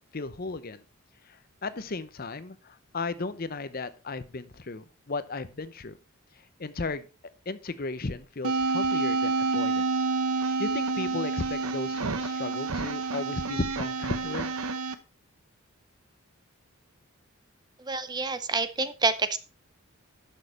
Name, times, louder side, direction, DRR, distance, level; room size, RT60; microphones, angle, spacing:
voice 1, 0.1-0.8 1.3-6.0 6.6-7.0 7.5-10.0 10.3-14.5, left 3 dB, 40° left, 13 dB, 0.7 m, -35 dB
sound 1, 8.4-14.9, right 3 dB, 85° right, 0.9 m, -28 dB
voice 2, 17.8-19.4, right 3 dB, 20° right, 12 dB, 0.6 m, -28 dB
12.0 x 6.5 x 4.2 m, 0.33 s
head